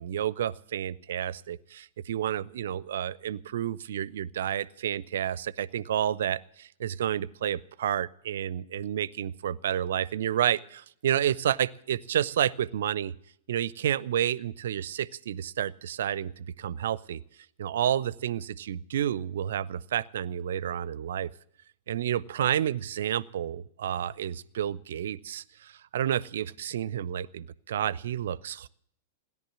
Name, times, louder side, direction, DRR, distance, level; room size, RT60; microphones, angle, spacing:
voice 1, 0.0-13.1 13.5-17.2 17.6-21.3 21.9-28.7, right 10 dB, 60° right, 22 dB, 0.5 m, -30 dB
17.0 x 10.5 x 7.4 m, 0.69 s
figure-of-eight pair, 100°, 0 cm